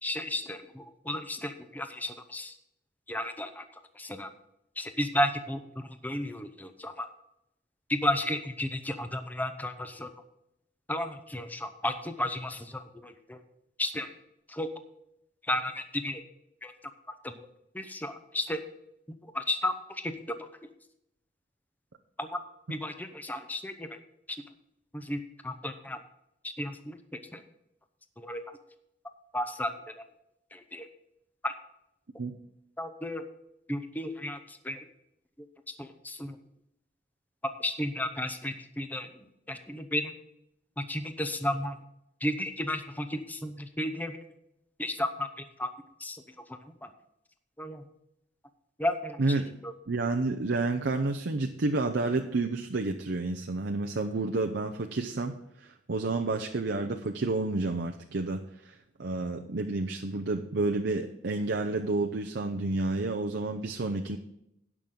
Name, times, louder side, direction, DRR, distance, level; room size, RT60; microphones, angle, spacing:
voice 1, 0.0-2.5 3.1-3.6 4.0-4.3 4.8-7.1 7.9-10.1 10.9-13.4 13.8-14.1 14.5-14.7 15.5-16.2 16.6-16.7 17.2-17.3 17.7-18.6 19.3-19.7 20.0-20.3 22.2-22.4 22.7-23.9 24.9-26.0 26.4-27.0 27.3-27.4 28.2-28.4 29.3-30.0 30.5-30.9 31.4-31.5 32.8-33.2 33.7-34.8 35.8-36.4 37.6-39.1 39.5-40.1 40.8-41.8 42.2-44.2 44.8-45.3 45.6-45.7 46.0-46.2 46.8-46.9 47.6-47.8 48.8-49.2 49.6-49.7, left 1 dB, 10° left, 8 dB, 0.8 m, -33 dB
voice 2, 49.9-64.2, right 3 dB, 70° right, 3 dB, 0.7 m, -30 dB
17.5 x 6.1 x 3.8 m, 0.79 s
head